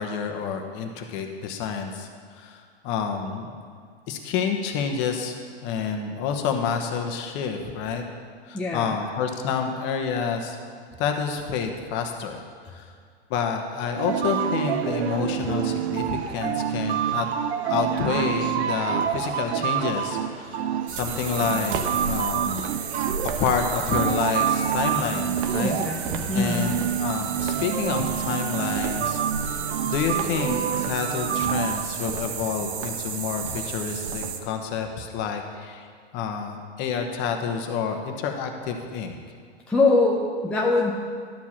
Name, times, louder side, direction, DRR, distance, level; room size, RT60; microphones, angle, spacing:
voice 1, 0.0-3.6 4.1-5.4 5.6-8.0 8.5-10.6 11.0-12.4 12.7-12.9 13.3-17.3 17.7-21.8 22.1-22.7 23.4-25.7 26.3-29.6 29.8-35.9 36.1-39.2, left 6 dB, 35° left, 4 dB, 1.1 m, -28 dB
voice 2, 8.5-9.0 25.6-26.6 39.7-40.9, left 2 dB, 5° left, -2 dB, 0.6 m, -23 dB
sound 1, 14.0-31.8, right 9 dB, 80° right, 0.7 m, -27 dB
sound 2, 20.9-34.4, right 6 dB, 55° right, 1.1 m, -32 dB
12.0 x 4.7 x 7.2 m, 2.1 s
hypercardioid pair, 125°, 32 cm